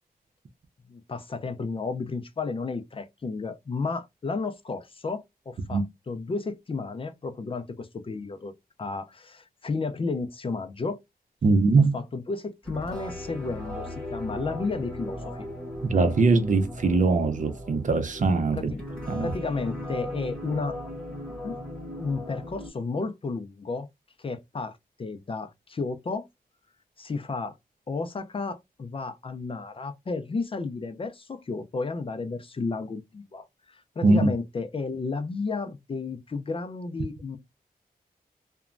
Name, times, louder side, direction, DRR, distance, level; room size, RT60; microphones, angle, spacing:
voice 1, 0.9-8.5 8.8-11.0 11.8-15.5 18.5-18.8 19.2-20.8 21.4-21.6 21.9-23.9 24.2-26.3 27.0-27.6 27.9-37.4, left 4 dB, 35° left, 0.4 m, -32 dB
voice 2, 11.4-11.9 15.8-18.7 19.1-19.3 34.0-34.3, right 3 dB, 55° right, 0.5 m, -21 dB
sound 1, 12.6-22.7, left 1 dB, 5° left, 1.2 m, -37 dB
2.9 x 2.1 x 2.4 m
wide cardioid pair, 135°, 16 cm